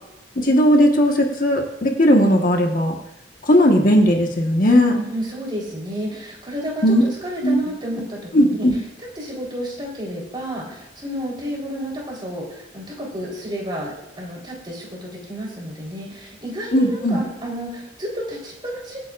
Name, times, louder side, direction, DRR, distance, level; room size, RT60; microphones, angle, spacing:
voice 1, 0.4-2.9 3.4-5.0 6.8-7.0 7.4-7.6 8.3-8.8 16.7-17.2, equal, 45° left, 1 dB, 1.5 m, -17 dB
voice 2, 4.9-8.7 9.2-19.0, equal, 25° right, -3 dB, 4.0 m, -31 dB
24.0 x 9.4 x 2.6 m, 0.97 s
head